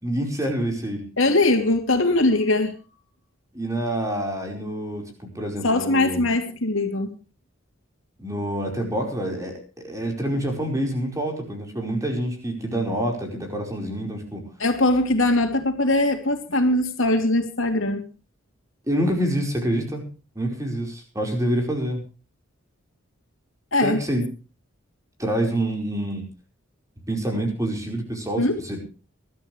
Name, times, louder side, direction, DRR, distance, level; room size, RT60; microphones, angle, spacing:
voice 1, 0.0-1.0 3.5-6.3 8.2-14.5 18.9-20.0 20.3-22.0 23.8-24.3 25.2-26.3 27.1-28.8, right 1 dB, 15° right, 2 dB, 4.9 m, -27 dB
voice 2, 1.2-2.7 5.6-7.2 14.6-18.1 23.7-24.0 28.4-28.6, left 2 dB, 75° left, 5 dB, 3.0 m, -21 dB
22.5 x 13.5 x 3.3 m, 0.34 s
head